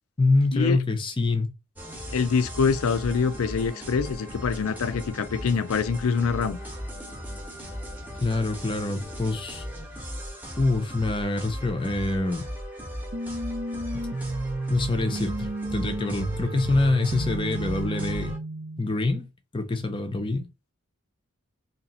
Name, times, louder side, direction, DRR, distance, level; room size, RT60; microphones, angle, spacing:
voice 1, 0.2-1.5 8.2-9.7 10.6-12.5 13.9-14.0 14.7-18.4 18.8-19.3 19.5-20.5, left 2 dB, 20° left, 0.6 m, -25 dB
sound 1, 1.8-18.4, equal, 10° right, 0.9 m, -37 dB
voice 2, 2.1-6.6, left 5 dB, 80° left, 0.4 m, -25 dB
sound 2, 13.1-19.1, right 2 dB, 50° right, 0.6 m, -33 dB
2.9 x 2.8 x 4.1 m
head